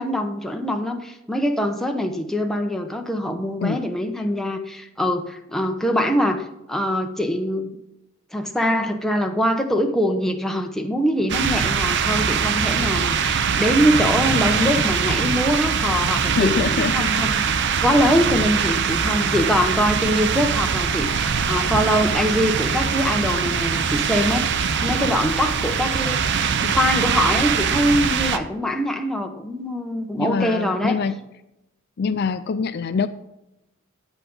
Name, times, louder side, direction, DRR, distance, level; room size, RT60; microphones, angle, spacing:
voice 1, 0.0-7.8 8.3-17.4 17.8-24.5 24.8-31.0, equal, ahead, 3 dB, 0.8 m, -23 dB
sound 1, 11.3-28.4, right 6 dB, 55° right, 0.6 m, -22 dB
voice 2, 16.4-17.0 30.2-31.1 32.0-33.1, left 5 dB, 50° left, 11 dB, 0.4 m, -24 dB
8.9 x 8.1 x 3.9 m, 0.90 s
head